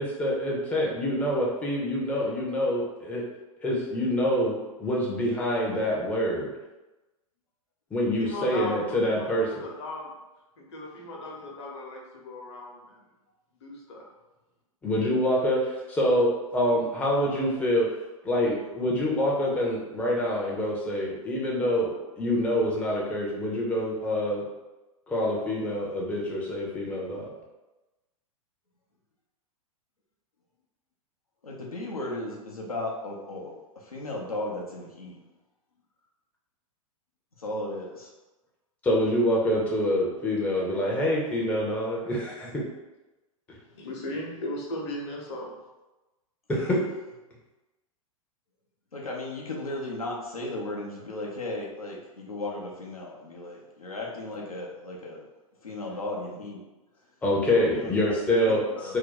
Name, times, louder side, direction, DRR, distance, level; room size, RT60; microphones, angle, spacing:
voice 1, 0.0-3.2 3.6-6.5 7.9-9.6 14.8-17.9 18.2-24.4 25.1-27.3 38.8-42.5 46.5-46.8 57.2-59.0, equal, 10° left, -4 dB, 0.5 m, -26 dB
voice 2, 8.2-10.1 10.6-13.0 13.6-14.0 43.5-45.5, left 1 dB, 50° left, -1 dB, 0.9 m, -37 dB
voice 3, 31.4-35.2 37.4-38.1 48.9-55.2 55.6-56.6 57.7-57.9 58.4-59.0, left 2 dB, 85° left, -3 dB, 0.7 m, -35 dB
2.7 x 2.2 x 3.8 m, 1.1 s
figure-of-eight pair, 100°, 18 cm